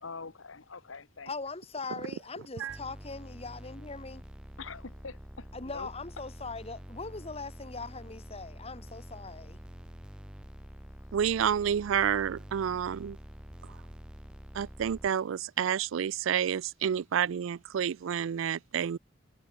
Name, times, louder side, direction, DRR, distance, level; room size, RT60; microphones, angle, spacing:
voice 1, 0.0-1.3 4.6-5.9, left 4 dB, 85° left, 1.3 m, -44 dB
voice 2, 1.3-4.2 5.5-9.6, left 3 dB, 30° left, 1.5 m, -41 dB
sound 1, 2.7-15.1, equal, 5° right, 0.7 m, -47 dB
voice 3, 11.1-13.2 13.7-13.8 14.5-19.0, right 8 dB, 80° right, 0.4 m, -29 dB
head